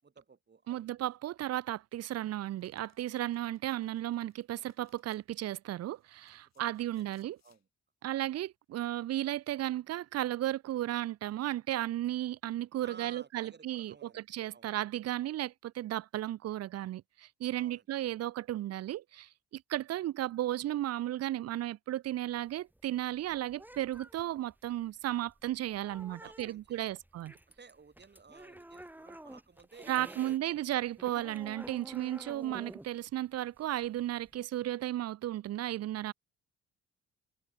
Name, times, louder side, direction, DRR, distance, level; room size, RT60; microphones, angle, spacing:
voice 1, 0.0-1.0 6.5-6.9 7.2-7.6 12.8-14.3 14.5-14.7 17.6-17.8 26.1-27.0 27.6-30.6, right 5 dB, 35° right, 7.1 m, -56 dB
voice 2, 0.7-7.4 8.0-27.3 29.9-36.1, right 13 dB, 55° right, 0.5 m, -34 dB
Domestic sounds home sounds, 2.6-5.2 6.0-7.6, left 9 dB, 60° left, 6.3 m, -72 dB
sound 1, 22.3-30.4 30.7-34.4, right 1 dB, 5° right, 2.5 m, -51 dB
cardioid pair, 90°, 30 cm